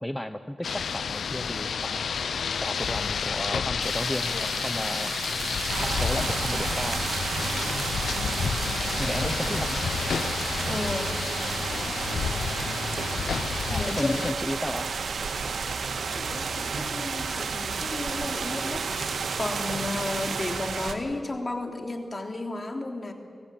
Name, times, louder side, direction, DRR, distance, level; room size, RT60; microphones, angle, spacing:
voice 1, 0.0-2.1 2.6-5.2 5.8-7.0 9.0-9.9 13.7-14.9, left 1 dB, 10° left, 9 dB, 0.9 m, -33 dB
Rain, 0.6-14.3, left 6 dB, 85° left, 0.5 m, -30 dB
sound 1, 3.8-20.5, right 5 dB, 70° right, 0.6 m, -37 dB
sound 2, 5.7-20.9, right 5 dB, 90° right, 1.7 m, -32 dB
voice 2, 10.7-11.1 13.7-14.2 16.1-23.1, left 2 dB, 40° left, 3 dB, 3.3 m, -33 dB
26.0 x 17.0 x 8.7 m, 2.4 s
cardioid pair, 55°, 0 cm